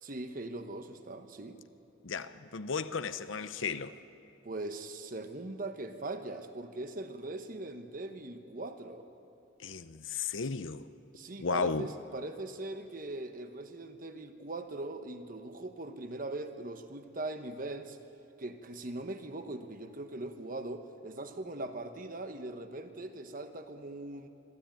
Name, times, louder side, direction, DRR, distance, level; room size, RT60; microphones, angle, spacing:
voice 1, 0.0-1.6 4.4-9.1 11.1-18.0 18.4-24.3, right 2 dB, 45° right, 1.2 m, -41 dB
voice 2, 2.0-3.9 9.6-10.8 11.4-11.9, left 5 dB, 85° left, 0.8 m, -34 dB
24.5 x 13.0 x 9.1 m
head